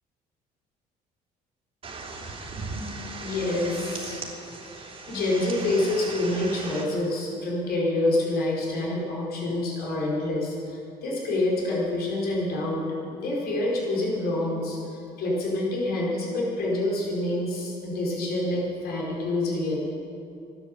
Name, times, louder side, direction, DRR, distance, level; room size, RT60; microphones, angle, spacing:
sound 1, 1.8-6.8, right 3 dB, 35° right, 2.9 m, -37 dB
voice 1, 3.2-4.2 4.8-19.9, left 2 dB, 65° left, -3 dB, 4.8 m, -27 dB
13.5 x 11.5 x 7.8 m, 2.7 s
cardioid pair, 110°, 17 cm